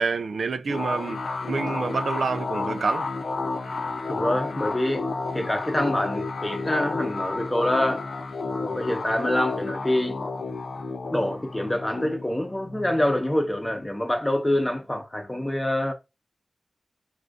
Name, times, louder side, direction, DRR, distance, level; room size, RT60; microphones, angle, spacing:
voice 1, 0.0-3.1, right 4 dB, 85° right, 0.3 m, -27 dB
sound 1, 0.7-13.9, left 3 dB, 80° left, 0.4 m, -31 dB
voice 2, 4.1-5.1 5.3-8.0 8.5-10.2 11.1-15.9, left 1 dB, 20° left, 0.7 m, -26 dB
2.5 x 2.4 x 3.4 m
wide cardioid pair, 70°, 0 cm